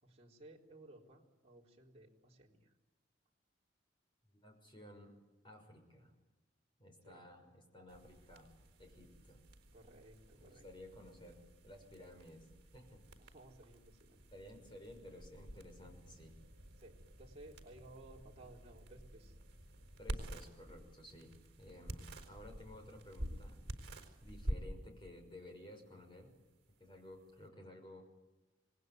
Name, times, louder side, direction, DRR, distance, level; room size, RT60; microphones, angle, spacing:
voice 1, 0.0-2.7 7.0-7.2 9.7-10.7 13.2-14.2 16.8-19.4, right 2 dB, 30° right, -2 dB, 4.2 m, -58 dB
voice 2, 4.3-5.1 5.4-6.1 6.8-8.5 8.8-9.4 10.3-12.5 12.7-13.0 14.3-16.3 20.0-23.6 24.2-26.3 26.8-28.1, left 1 dB, 25° left, 4 dB, 6.1 m, -55 dB
sound 1, 7.9-27.5, equal, 50° right, 4.1 m, -49 dB
26.5 x 19.5 x 9.5 m, 1.1 s
head